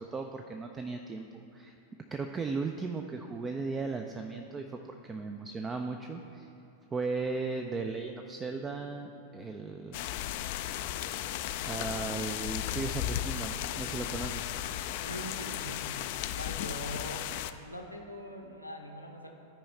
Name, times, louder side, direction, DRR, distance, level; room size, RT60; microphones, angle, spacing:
voice 1, 0.0-1.7 2.1-6.5 6.9-10.0 11.6-14.5, right 4 dB, 20° right, 4 dB, 0.4 m, -36 dB
sound 1, 9.9-17.5, left 12 dB, 50° left, 0.3 m, -35 dB
voice 2, 15.0-15.9 16.4-17.3 17.6-19.3, equal, 90° left, 2 dB, 0.9 m, -42 dB
13.0 x 4.7 x 4.2 m, 2.9 s
figure-of-eight pair, 90°, 0 cm